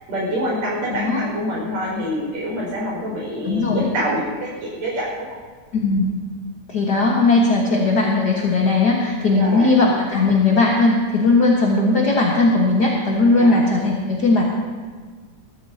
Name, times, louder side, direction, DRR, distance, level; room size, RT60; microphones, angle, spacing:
voice 1, 0.1-5.4 9.3-9.7 13.4-13.7, equal, 65° right, -4 dB, 6.6 m, -26 dB
voice 2, 0.9-1.2 3.4-3.9 5.8-6.2 6.7-14.4, left 3 dB, 45° left, -2 dB, 1.5 m, -18 dB
21.0 x 13.5 x 2.8 m, 1.5 s
omnidirectional pair, 3.5 m